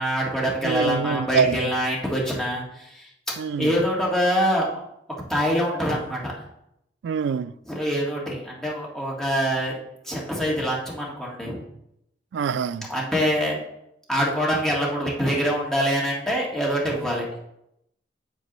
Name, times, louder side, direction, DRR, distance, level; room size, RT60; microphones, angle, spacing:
voice 1, 0.0-3.1 3.6-4.8 5.3-6.3 7.7-9.7 10.1-11.6 12.9-13.6 14.1-17.4, equal, 5° left, 1.9 m, -25 dB
voice 2, 0.6-1.7 3.4-3.7 7.0-7.5 12.3-12.8, right 6 dB, 75° right, 0.3 m, -25 dB
8.1 x 7.8 x 3.1 m
head